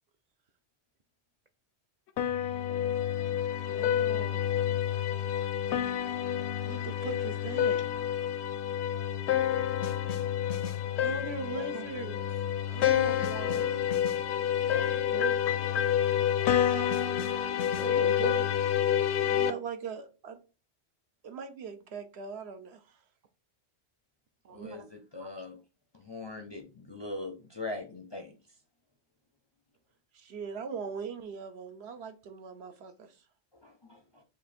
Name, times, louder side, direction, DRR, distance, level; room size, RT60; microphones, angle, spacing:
sound 1, 2.2-19.5, left 10 dB, 75° left, 0.8 m, -28 dB
voice 1, 3.6-4.6 6.6-7.9 11.0-12.4 12.7-13.8 16.7-16.9 19.2-20.4 21.2-23.0 30.1-33.2, right 6 dB, 70° right, 1.0 m, -40 dB
voice 2, 11.6-11.9 14.7-15.3 17.8-18.5 24.4-24.8 25.2-25.3, right 6 dB, 55° right, 0.5 m, -40 dB
voice 3, 24.5-25.6 25.9-28.3 33.5-34.2, left 2 dB, 30° left, 0.5 m, -41 dB
5.0 x 2.5 x 4.2 m
omnidirectional pair, 1.1 m